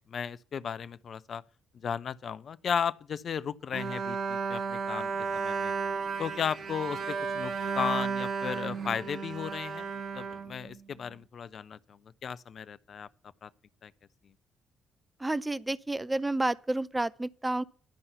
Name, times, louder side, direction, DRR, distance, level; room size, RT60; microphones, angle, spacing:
voice 1, 0.0-1.4 1.8-5.7 6.2-13.1 13.4-13.5 13.8-13.9, left 7 dB, 55° left, 0.5 m, -35 dB
Bowed string instrument, 3.7-11.1, right 5 dB, 55° right, 1.6 m, -33 dB
voice 2, 15.2-17.6, right 2 dB, 15° right, 0.5 m, -30 dB
12.0 x 5.5 x 8.0 m
hypercardioid pair, 40°, 0 cm